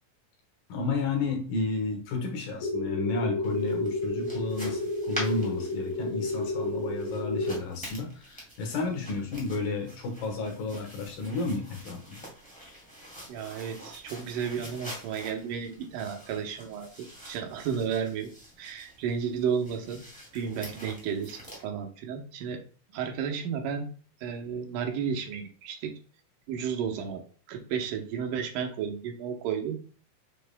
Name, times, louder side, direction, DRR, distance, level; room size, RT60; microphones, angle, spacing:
voice 1, 0.7-12.2, left 3 dB, 80° left, 2 dB, 3.1 m, -32 dB
sound 1, 2.6-7.6, left 2 dB, 65° left, 2.6 m, -31 dB
sound 2, 3.4-21.6, equal, 5° left, 1.5 m, -46 dB
voice 2, 13.3-18.3 18.6-20.0 20.3-22.6 22.9-23.9 24.2-25.9 26.5-27.2 27.5-29.8, right 7 dB, 75° right, 3 dB, 2.5 m, -32 dB
6.9 x 6.8 x 2.2 m, 0.41 s
omnidirectional pair, 3.9 m